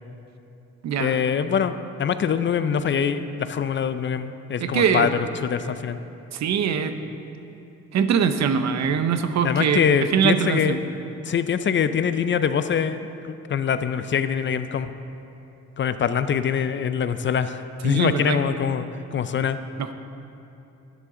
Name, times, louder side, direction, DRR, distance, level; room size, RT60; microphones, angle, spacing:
voice 1, 1.0-6.0 9.4-10.8 11.3-14.9 15.8-19.6, left 7 dB, 40° left, 11 dB, 0.5 m, -24 dB
voice 2, 4.6-5.1 6.3-7.0 7.9-9.8 10.1-10.8 17.8-18.4 19.8-19.9, right 7 dB, 60° right, 9 dB, 0.7 m, -22 dB
12.0 x 9.7 x 3.8 m, 2.9 s
cardioid pair, 90°, 30 cm